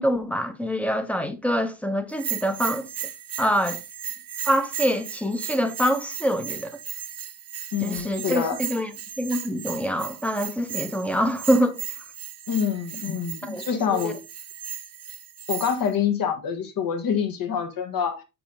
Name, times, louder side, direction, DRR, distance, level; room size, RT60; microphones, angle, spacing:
voice 1, 0.0-2.9 3.4-3.8 4.5-6.8 7.8-8.9 9.2-11.8 13.4-13.6 13.9-14.2, equal, 5° left, 0.7 m, -25 dB
Bell, 2.1-15.9, right 9 dB, 40° right, 0.8 m, -36 dB
voice 2, 7.7-8.6 12.5-14.2 15.5-18.2, left 7 dB, 65° left, 1.6 m, -26 dB
6.9 x 5.1 x 3.7 m
cardioid pair, 155°, 37 cm